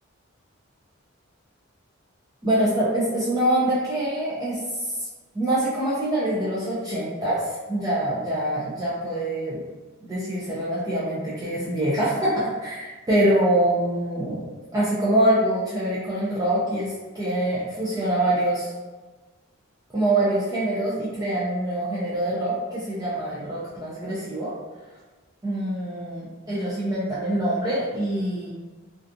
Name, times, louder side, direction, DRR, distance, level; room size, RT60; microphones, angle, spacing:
voice 1, 2.4-4.6 5.0-5.1 5.3-9.6 10.0-14.4 14.7-18.7 19.9-24.5 25.4-28.5, right 1 dB, 15° right, -9 dB, 0.4 m, -24 dB
2.5 x 2.3 x 2.5 m, 1.3 s
head